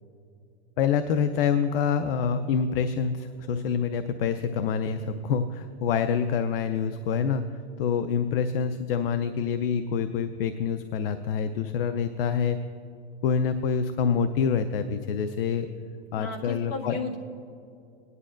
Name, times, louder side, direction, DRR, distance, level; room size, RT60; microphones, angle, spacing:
voice 1, 0.8-7.5 7.8-12.6 13.2-15.7 16.1-17.0, left 6 dB, 65° left, 10 dB, 0.6 m, -26 dB
voice 2, 16.2-17.2, left 3 dB, 45° left, -3 dB, 2.0 m, -34 dB
18.5 x 11.0 x 2.5 m, 2.5 s
supercardioid pair, 160°, 31 cm